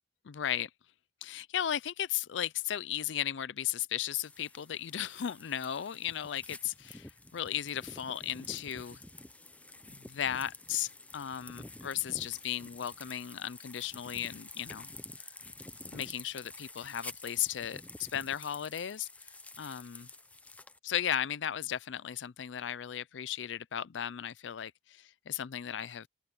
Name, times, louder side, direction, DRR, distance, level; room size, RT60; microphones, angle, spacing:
voice 1, 0.3-0.7 1.2-9.0 10.0-14.9 15.9-19.1 19.6-20.1 20.8-26.1, left 10 dB, 85° left, 0.5 m, -35 dB
sound 1, 4.2-20.8, left 2 dB, 10° left, 0.5 m, -49 dB
open air
head